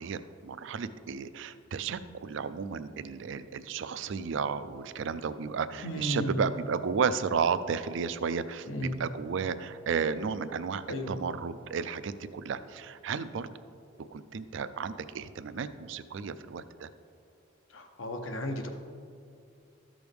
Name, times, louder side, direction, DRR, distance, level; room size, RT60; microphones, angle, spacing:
voice 1, 0.0-13.5 14.1-16.9, right 6 dB, 65° right, 13 dB, 0.4 m, -33 dB
voice 2, 5.8-6.4 8.7-9.0 10.9-11.2 17.7-18.7, left 1 dB, 80° left, 5 dB, 0.9 m, -34 dB
13.0 x 6.2 x 3.5 m, 2.4 s
head